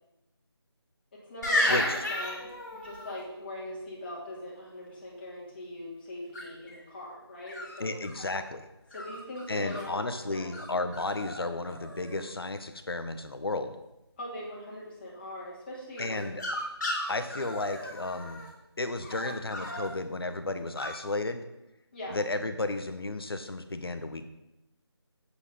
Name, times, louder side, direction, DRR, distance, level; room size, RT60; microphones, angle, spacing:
voice 1, 1.1-8.0 8.9-10.5 14.2-16.3 21.9-22.2, left 1 dB, 25° left, -6 dB, 2.9 m, -41 dB
sound 1, 1.4-3.2 6.3-6.7 7.5-8.3 8.9-9.8 10.5-10.7 10.9-11.4 11.7-12.3 16.0-18.5 19.0-19.9 20.8-21.0, left 1 dB, 40° left, 3.1 m, -33 dB
voice 2, 7.8-8.7 9.5-13.7 16.0-16.4 17.1-18.4 18.8-21.4 22.1-24.2, left 2 dB, 60° left, 9 dB, 1.1 m, -33 dB
8.2 x 6.1 x 5.4 m, 0.92 s
figure-of-eight pair, 165°, 14 cm